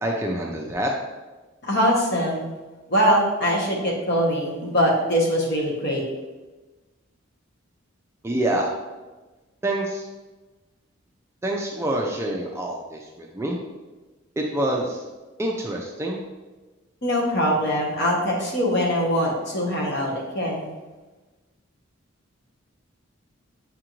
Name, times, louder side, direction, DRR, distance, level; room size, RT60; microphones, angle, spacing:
voice 1, 0.0-0.9 8.2-8.7 9.6-10.1 11.4-13.6 14.4-15.0 15.4-16.2, right 1 dB, 15° right, -1 dB, 0.3 m, -26 dB
voice 2, 1.6-2.4 2.9-6.0 17.0-20.7, equal, 50° left, -2 dB, 1.0 m, -22 dB
6.6 x 2.5 x 3.0 m, 1.2 s
head